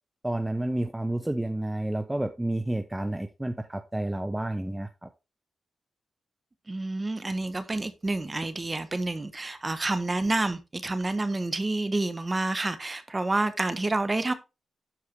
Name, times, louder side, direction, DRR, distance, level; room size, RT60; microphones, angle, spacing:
voice 1, 0.2-5.1, right 1 dB, 10° right, 0.8 m, -30 dB
voice 2, 6.7-14.3, right 2 dB, 30° right, 1.3 m, -29 dB
12.0 x 4.8 x 3.8 m
cardioid pair, 70°, 0 cm